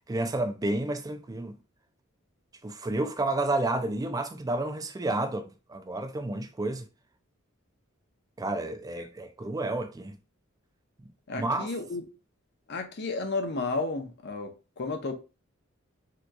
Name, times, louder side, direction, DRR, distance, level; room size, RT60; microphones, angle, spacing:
voice 1, 0.1-1.6 2.6-6.9 8.4-10.2 11.0-11.7, right 2 dB, 20° right, 0.3 m, -31 dB
voice 2, 11.3-12.0 12.7-15.1, left 3 dB, 55° left, 0.6 m, -32 dB
3.6 x 2.9 x 2.2 m
head